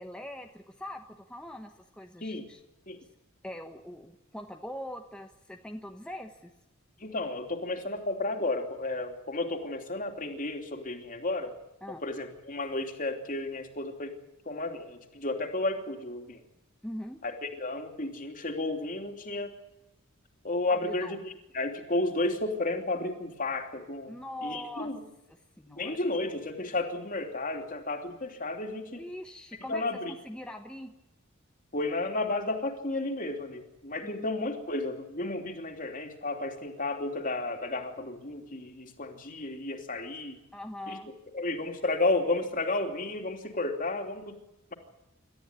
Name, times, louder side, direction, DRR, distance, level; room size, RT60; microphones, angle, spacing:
voice 1, 0.0-2.6 3.4-6.5 11.8-12.0 16.8-17.2 20.7-21.2 24.1-24.9 25.6-26.0 28.9-29.8 30.1-30.9 34.0-34.3 40.5-41.1, left 1 dB, 5° left, 3 dB, 1.1 m, -42 dB
voice 2, 7.0-11.5 12.0-14.1 14.4-16.4 17.2-19.5 20.4-24.1 24.4-25.0 25.7-29.0 29.7-30.1 31.7-40.4 40.9-41.0 41.3-44.3, left 2 dB, 40° left, 4 dB, 3.1 m, -32 dB
28.0 x 13.5 x 9.7 m, 0.94 s
head